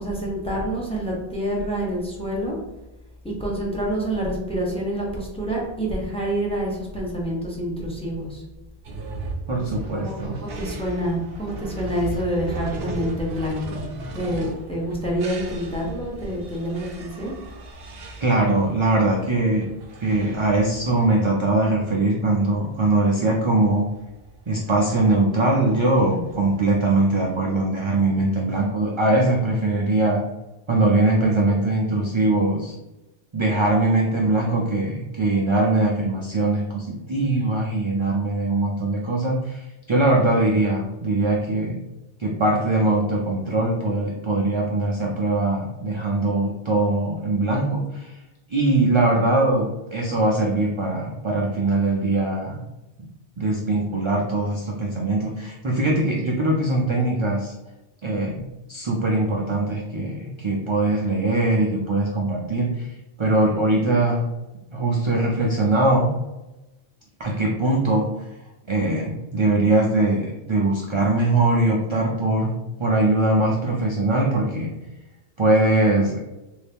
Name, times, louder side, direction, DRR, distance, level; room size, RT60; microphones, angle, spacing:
voice 1, 0.0-2.6 3.4-8.4 9.9-13.9 14.1-17.4 26.1-26.6, equal, 5° left, -3 dB, 0.8 m, -27 dB
sound 1, 8.8-27.4, right 3 dB, 70° right, 0.8 m, -38 dB
voice 2, 9.5-10.4 18.2-19.7 20.0-23.8 24.5-30.2 30.7-32.7 33.3-41.8 42.2-48.2 48.5-52.6 53.4-57.5 58.0-58.4 58.7-62.9 63.2-64.2 64.7-66.1 67.2-68.2 68.7-72.5 72.8-74.7 75.4-76.2, right 2 dB, 45° right, -3 dB, 0.4 m, -21 dB
3.2 x 2.7 x 3.4 m, 1.0 s
omnidirectional pair, 1.1 m